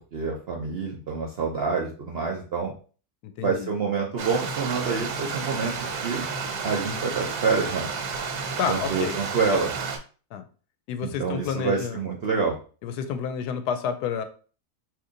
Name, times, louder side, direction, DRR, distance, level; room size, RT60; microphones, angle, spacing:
voice 1, 0.1-2.7 3.4-6.3 6.6-7.9 8.7-9.7 11.0-12.6, right 5 dB, 60° right, 0 dB, 0.6 m, -27 dB
voice 2, 3.2-3.7 8.6-9.2 10.3-10.4 10.9-12.1 12.8-14.2, left 7 dB, 85° left, 9 dB, 1.1 m, -30 dB
Stream, 4.2-10.0, right 5 dB, 90° right, 1.2 m, -31 dB
2.9 x 2.6 x 3.8 m, 0.38 s
omnidirectional pair, 1.7 m